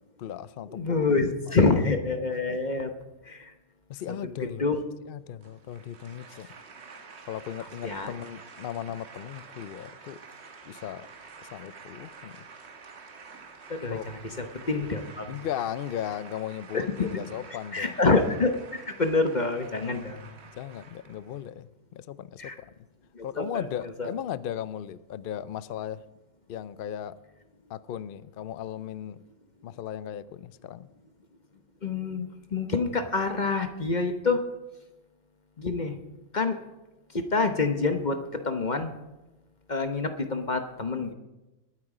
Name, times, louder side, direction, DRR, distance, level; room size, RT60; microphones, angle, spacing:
voice 1, 0.2-1.1 1.5-1.6 3.9-4.7 5.1-6.5 7.2-10.2 10.7-11.1 11.4-12.5 13.9-14.0 15.3-18.0 20.6-22.9 23.2-26.0 26.5-27.2 27.7-29.2 29.6-30.9, left 10 dB, 75° left, 16 dB, 0.5 m, -37 dB
voice 2, 0.7-2.9 3.2-3.5 4.2-4.8 7.8-8.1 13.7-14.0 14.4-15.3 16.7-17.1 17.7-20.3 22.4-22.5 23.1-23.6 24.0-24.1 31.8-34.4 35.6-36.0 36.3-36.6 37.1-38.9 39.7-41.1, left 3 dB, 35° left, 7 dB, 0.9 m, -27 dB
sound 1, 5.4-21.5, right 5 dB, 50° right, 1.4 m, -48 dB
20.0 x 9.3 x 4.9 m, 1.0 s
omnidirectional pair, 1.6 m